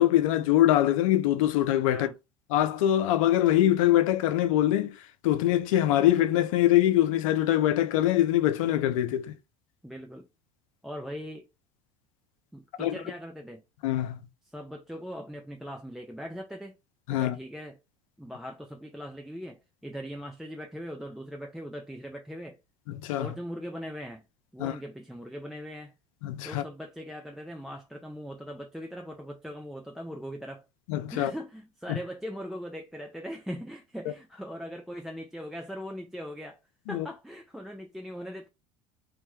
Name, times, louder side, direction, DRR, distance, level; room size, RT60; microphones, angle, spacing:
voice 1, 0.0-2.1 2.5-5.0 5.2-9.3 12.8-13.0 13.8-14.2 17.1-17.4 22.9-23.3 24.6-24.8 26.2-26.6 30.9-31.3 31.9-32.0 36.9-37.1, left 13 dB, 75° left, 0.4 m, -23 dB
voice 2, 9.8-10.3 10.8-11.4 12.5-13.6 14.5-16.8 17.1-17.7 18.2-22.6 23.2-24.3 24.5-25.9 26.4-30.6 31.1-36.6 36.9-38.5, equal, ahead, 0.3 m, -40 dB
2.1 x 2.1 x 2.9 m
hypercardioid pair, 75°, 17 cm